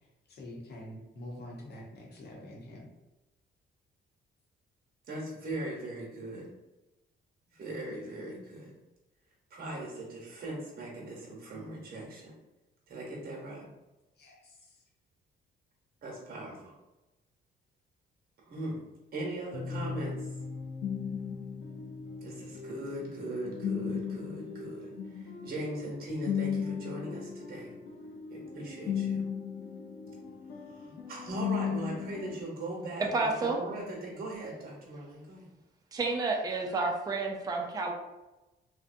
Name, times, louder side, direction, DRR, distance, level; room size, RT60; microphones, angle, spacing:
voice 1, 0.3-2.9 14.2-14.8, left 1 dB, 55° left, -2 dB, 0.8 m, -46 dB
voice 2, 5.1-6.5 7.5-8.7 9.5-12.3 12.9-13.7 16.0-16.7 18.5-18.8 19.1-20.3 22.2-27.7 28.3-29.2 30.7-35.5, right 1 dB, 50° right, -3 dB, 0.9 m, -39 dB
sound 1, 19.5-32.4, left 7 dB, 75° left, 0.5 m, -37 dB
voice 3, 33.0-33.6 35.9-37.9, right 3 dB, 20° right, 1 dB, 0.4 m, -30 dB
2.6 x 2.1 x 2.5 m, 1.0 s
cardioid pair, 90°, 20 cm